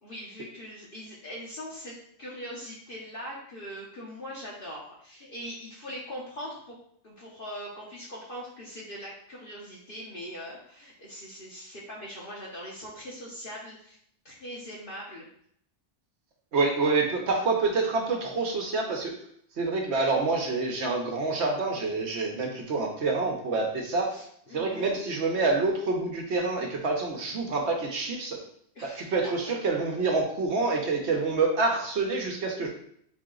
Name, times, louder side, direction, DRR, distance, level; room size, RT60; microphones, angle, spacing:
voice 1, 0.0-1.9 2.2-6.7 7.0-14.0 14.2-15.3 24.1-25.0 28.7-29.3 31.1-31.3, equal, 50° left, -5 dB, 1.0 m, -41 dB
voice 2, 16.5-19.1 19.6-24.1 24.5-28.4 28.8-32.7, right 3 dB, 70° right, 1 dB, 1.0 m, -27 dB
3.9 x 2.9 x 3.7 m, 0.66 s
omnidirectional pair, 1.2 m